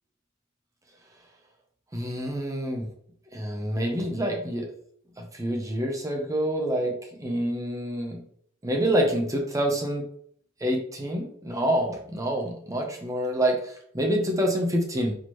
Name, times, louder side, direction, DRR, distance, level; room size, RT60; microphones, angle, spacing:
voice 1, 1.9-2.9 3.3-4.7 5.2-8.2 8.6-10.0 10.6-15.1, equal, 15° right, 1 dB, 0.6 m, -27 dB
4.3 x 2.9 x 3.0 m, 0.63 s
head